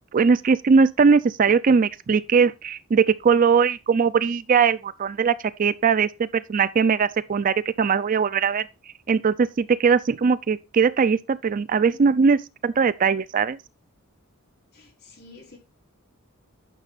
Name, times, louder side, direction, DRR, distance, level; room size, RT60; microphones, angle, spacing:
voice 1, 0.1-8.7 9.1-13.6, right 5 dB, 40° right, 0.4 m, -20 dB
voice 2, 14.7-15.6, left 3 dB, 50° left, 3.9 m, -49 dB
10.0 x 6.1 x 4.0 m
head